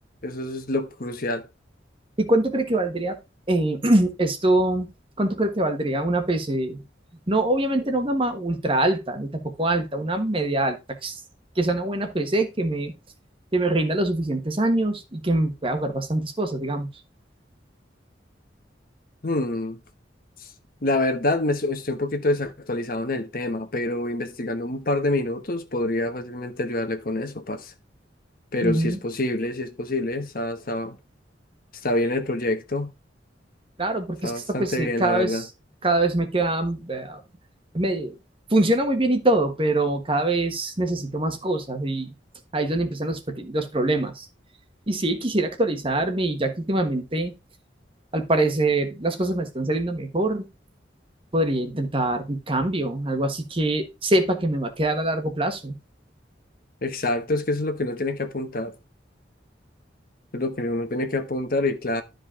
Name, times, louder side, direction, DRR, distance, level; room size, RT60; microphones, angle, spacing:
voice 1, 0.2-1.4 19.2-19.8 20.8-27.7 28.5-31.0 31.8-32.9 34.2-35.4 56.8-58.7 60.3-62.0, left 2 dB, 50° left, 1.2 m, -26 dB
voice 2, 2.2-3.2 3.5-4.9 5.2-6.8 7.3-10.8 11.0-11.2 11.5-12.9 13.5-16.9 28.6-29.0 33.8-35.5 35.8-37.2 37.7-38.2 38.5-42.1 42.5-44.3 44.9-47.3 48.1-50.5 51.3-55.7, right 1 dB, 30° right, 1.4 m, -24 dB
12.0 x 5.2 x 3.7 m
head